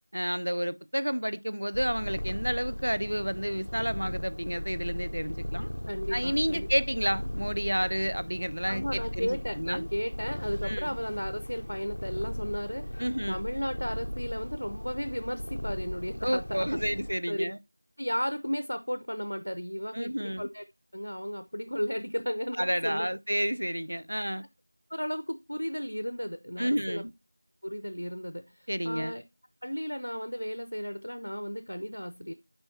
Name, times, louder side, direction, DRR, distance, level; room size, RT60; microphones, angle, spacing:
voice 1, 0.1-5.7 6.1-9.9 10.6-11.0 13.0-13.4 16.2-17.6 19.9-20.5 22.6-24.5 26.6-27.1 28.7-29.1, equal, 55° right, 0.6 m, -30 dB
Purr, 1.7-17.1, equal, 30° left, 0.6 m, -37 dB
voice 2, 5.9-6.7 8.7-13.0 13.3-17.0 17.3-17.4 18.0-20.6 20.9-23.1 24.9-27.0 27.6-29.2 29.6-32.3, equal, 70° left, 0.8 m, -34 dB
10.5 x 3.6 x 2.7 m
figure-of-eight pair, 180°, 0 cm